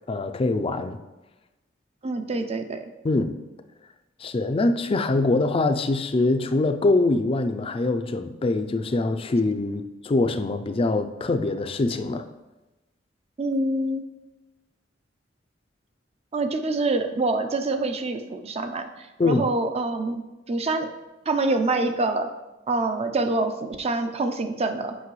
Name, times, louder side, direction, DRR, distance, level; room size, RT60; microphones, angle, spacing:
voice 1, 0.1-1.0 3.0-3.3 4.2-12.3 19.2-19.4, left 2 dB, 30° left, 9 dB, 0.4 m, -23 dB
voice 2, 2.0-2.8 13.4-14.0 16.3-20.9 21.3-22.3 22.7-25.0, right 2 dB, 35° right, 7 dB, 0.5 m, -26 dB
8.2 x 5.5 x 3.1 m, 1.1 s
head